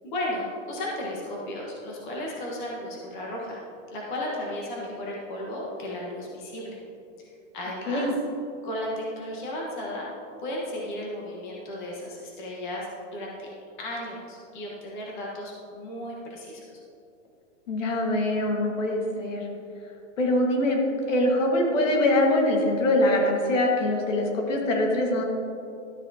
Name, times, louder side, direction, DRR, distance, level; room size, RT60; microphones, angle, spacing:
voice 1, 0.0-3.6 3.9-6.8 7.2-8.0 8.6-10.1 10.4-13.5 13.8-16.8, left 1 dB, 40° left, -3 dB, 1.4 m, -34 dB
voice 2, 17.7-19.4 20.2-20.8 21.1-25.2, left 1 dB, 75° left, 0 dB, 1.9 m, -23 dB
12.5 x 7.1 x 2.9 m, 2.7 s
supercardioid pair, 180°, 38 cm